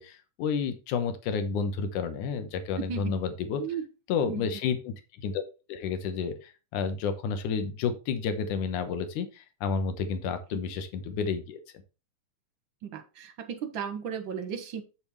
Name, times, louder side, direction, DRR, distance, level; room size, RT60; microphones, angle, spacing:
voice 1, 0.0-3.6 4.1-4.9 5.2-5.4 5.7-11.6, left 6 dB, 85° left, 9 dB, 2.6 m, -30 dB
voice 2, 12.8-14.8, right 7 dB, 50° right, 8 dB, 1.7 m, -35 dB
8.6 x 7.1 x 3.1 m, 0.30 s
omnidirectional pair, 3.5 m